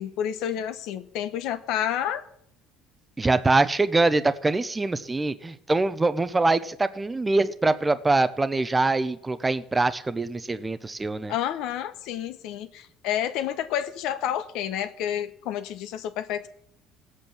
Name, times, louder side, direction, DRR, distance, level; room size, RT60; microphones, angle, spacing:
voice 1, 0.0-2.2 11.3-16.5, left 10 dB, 65° left, 10 dB, 1.0 m, -29 dB
voice 2, 3.2-11.3, right 3 dB, 10° right, 13 dB, 0.6 m, -24 dB
17.5 x 8.0 x 7.1 m, 0.70 s
cardioid pair, 155°, 0 cm